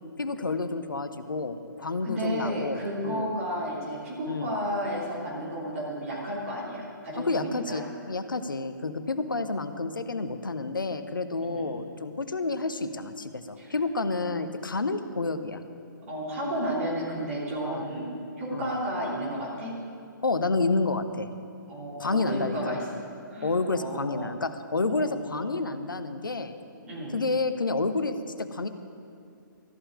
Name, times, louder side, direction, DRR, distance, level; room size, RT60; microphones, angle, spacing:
voice 1, 0.2-3.3 4.3-4.5 7.2-15.6 17.6-17.9 18.5-18.7 20.2-21.3 22.0-22.8 23.4-26.5 27.1-28.7, left 3 dB, 75° left, 10 dB, 0.8 m, -29 dB
voice 2, 2.0-7.8 11.4-11.7 13.6-13.7 16.0-18.1 18.4-19.7 21.7-22.9 23.3-24.3 24.9-25.7 26.8-27.1, equal, 40° right, -5 dB, 2.9 m, -32 dB
14.0 x 5.5 x 9.6 m, 2.6 s
figure-of-eight pair, 130°, 11 cm